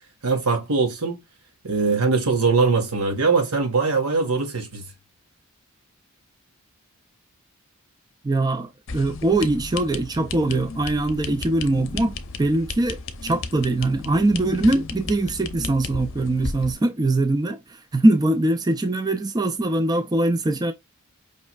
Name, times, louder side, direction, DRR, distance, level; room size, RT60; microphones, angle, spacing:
voice 1, 0.2-1.2 1.6-4.8, right 4 dB, 90° right, 1.6 m, -21 dB
voice 2, 8.2-20.7, right 2 dB, 20° right, 0.4 m, -22 dB
sound 1, 8.9-16.7, left 4 dB, 60° left, 0.7 m, -34 dB
5.3 x 3.1 x 2.3 m
head